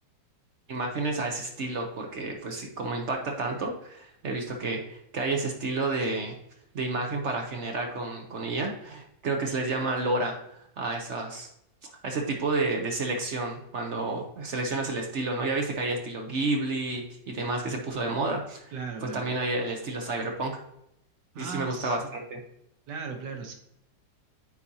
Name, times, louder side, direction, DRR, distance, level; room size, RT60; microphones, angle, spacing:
voice 1, 0.7-6.4 6.7-11.5 12.0-18.7 19.0-20.6 21.3-22.4, right 3 dB, 50° right, 2 dB, 0.9 m, -30 dB
voice 2, 18.7-19.3 21.3-22.1 22.9-23.5, right 5 dB, 75° right, 4 dB, 1.4 m, -37 dB
9.1 x 4.2 x 2.8 m, 0.78 s
omnidirectional pair, 1.9 m